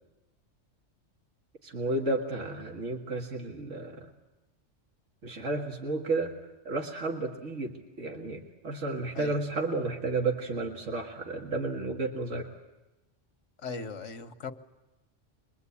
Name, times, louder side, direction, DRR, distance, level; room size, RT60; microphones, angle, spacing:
voice 1, 1.6-4.1 5.2-6.3 6.7-12.5, right 2 dB, 80° right, 2.2 m, -32 dB
voice 2, 13.6-14.5, left 4 dB, 80° left, 1.5 m, -38 dB
26.0 x 22.0 x 8.5 m
omnidirectional pair, 1.2 m